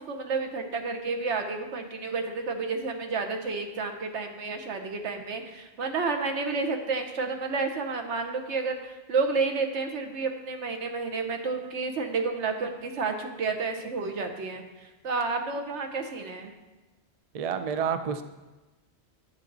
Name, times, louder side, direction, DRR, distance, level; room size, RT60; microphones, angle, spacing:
voice 1, 0.0-16.5, right 4 dB, 85° right, 5 dB, 1.3 m, -30 dB
voice 2, 17.3-18.2, right 7 dB, 45° right, 9 dB, 0.5 m, -29 dB
10.5 x 7.2 x 4.0 m, 1.1 s
omnidirectional pair, 1.1 m